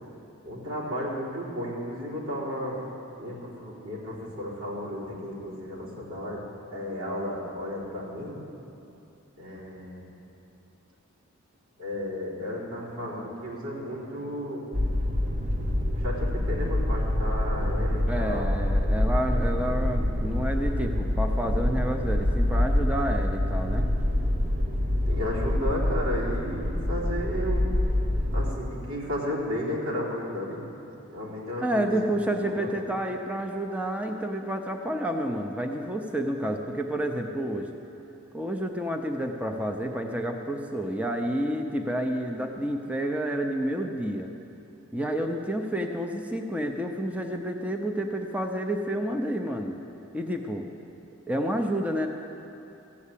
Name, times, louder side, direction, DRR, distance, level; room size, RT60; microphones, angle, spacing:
voice 1, 0.4-2.8 3.2-6.5 6.7-8.4 9.4-10.1 11.8-14.7 16.0-18.5 25.1-27.6 28.3-30.6 31.1-32.7, left 1 dB, 90° right, -7 dB, 3.9 m, -33 dB
sound 1, 14.7-28.5, left 1 dB, 35° right, 0.9 m, -26 dB
voice 2, 18.1-23.9 31.6-37.7 38.3-44.3 44.9-49.8 50.1-50.7 51.3-52.1, right 1 dB, 5° right, 4 dB, 0.6 m, -29 dB
14.5 x 8.5 x 8.4 m, 2.8 s
head